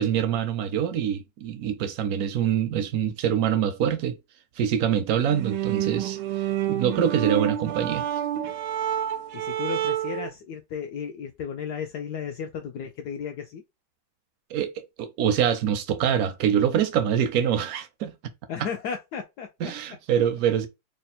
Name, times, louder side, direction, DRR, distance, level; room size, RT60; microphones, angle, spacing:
voice 1, 0.0-4.2 4.6-8.1 14.5-18.1 19.6-20.7, right 9 dB, 70° right, 0.8 m, -25 dB
sound 1, 5.2-10.3, right 12 dB, 90° right, 1.4 m, -28 dB
voice 2, 9.3-13.6 17.4-17.5 18.5-19.7, left 7 dB, 75° left, 0.9 m, -34 dB
3.4 x 2.2 x 4.2 m
omnidirectional pair, 2.2 m